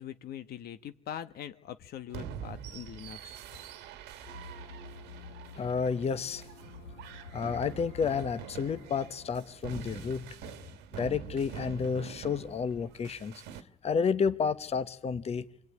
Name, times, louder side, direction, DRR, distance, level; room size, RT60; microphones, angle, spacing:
voice 1, 0.0-3.4, left 10 dB, 65° left, 11 dB, 1.2 m, -42 dB
sound 1, 2.1-13.6, right 8 dB, 85° right, 1.8 m, -45 dB
sound 2, 4.2-9.6, left 3 dB, 90° left, 4.4 m, -48 dB
voice 2, 5.5-6.5 7.3-10.3 10.9-13.4 13.8-15.5, left 6 dB, 40° left, 12 dB, 1.2 m, -31 dB
25.5 x 21.0 x 9.6 m, 0.73 s
cardioid pair, 110°, 17 cm